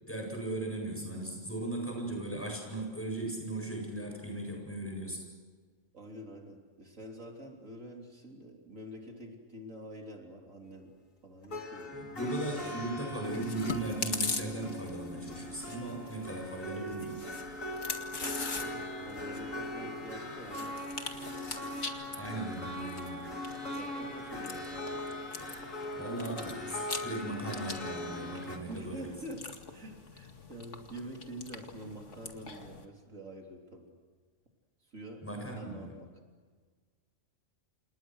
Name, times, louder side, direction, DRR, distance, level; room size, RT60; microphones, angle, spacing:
voice 1, 0.0-5.2 11.9-17.3 22.2-23.3 26.0-29.1 35.2-36.0, right 2 dB, 10° left, 0 dB, 8.0 m, -37 dB
voice 2, 5.9-10.9 11.2-12.6 18.5-22.0 23.7-25.0 28.7-33.9 34.8-36.1, right 1 dB, 80° right, 1 dB, 3.9 m, -47 dB
sound 1, 11.4-28.6, left 1 dB, 85° left, 3.0 m, -40 dB
Chewing mastication, 13.3-32.9, left 4 dB, 65° left, 2.5 m, -43 dB
29.0 x 29.0 x 6.5 m, 1.5 s
omnidirectional pair, 1.3 m